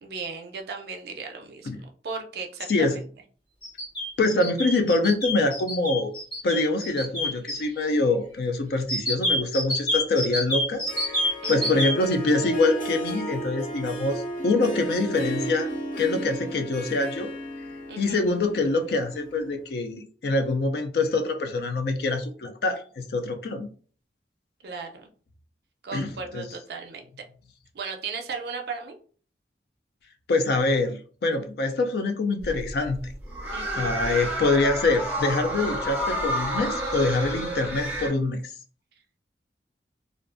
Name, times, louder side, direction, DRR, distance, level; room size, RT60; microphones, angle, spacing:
voice 1, 0.0-3.0 11.4-11.8 17.9-18.3 24.6-25.1 25.8-27.2 27.7-29.0 33.5-34.2, right 4 dB, 65° right, 3 dB, 0.4 m, -36 dB
sound 1, 3.6-7.6 8.9-11.9, left 1 dB, 30° left, 1.4 m, -27 dB
voice 2, 4.2-6.1 6.4-11.2 11.5-15.7 16.0-17.3 18.0-23.7 25.9-26.5 30.3-33.1 33.7-38.5, left 2 dB, 65° left, 5 dB, 0.4 m, -25 dB
Harp, 10.6-19.6, right 1 dB, 50° left, 0.8 m, -34 dB
sound 2, 32.4-38.1, right 1 dB, 10° right, 0.5 m, -30 dB
2.5 x 2.2 x 2.4 m, 0.43 s
head